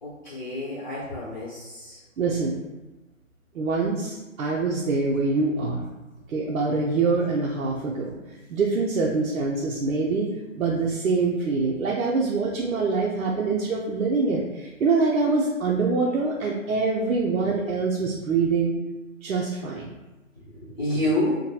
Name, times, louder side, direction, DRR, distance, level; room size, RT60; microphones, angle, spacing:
voice 1, 0.0-2.0 20.4-21.4, left 1 dB, 35° left, -9 dB, 0.8 m, -28 dB
voice 2, 2.2-2.6 3.5-5.9 6.3-18.7 19.2-19.9, right 4 dB, 90° right, -3 dB, 0.6 m, -25 dB
3.1 x 2.2 x 2.7 m, 1.1 s
hypercardioid pair, 165°, 40 cm